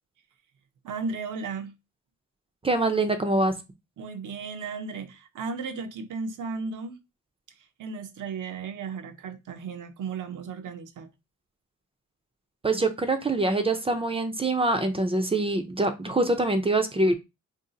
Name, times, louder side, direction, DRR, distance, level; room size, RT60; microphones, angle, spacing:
voice 1, 0.8-1.7 4.0-7.0 7.6-11.1, right 5 dB, 85° right, 0.6 m, -35 dB
voice 2, 2.6-3.6 12.6-17.2, right 2 dB, 20° right, 0.3 m, -24 dB
2.6 x 2.3 x 3.7 m
wide cardioid pair, 145°, 30 cm